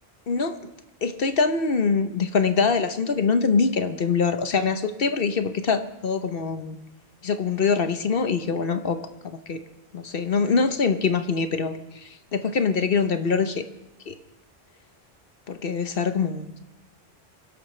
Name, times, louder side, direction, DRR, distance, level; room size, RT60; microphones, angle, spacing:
voice 1, 0.3-0.6 1.0-6.8 7.2-9.0 9.2-9.6 9.9-13.6 14.1-14.2 15.5-16.6, left 5 dB, 60° left, 8 dB, 1.0 m, -24 dB
23.5 x 11.5 x 3.2 m, 0.98 s
omnidirectional pair, 1.1 m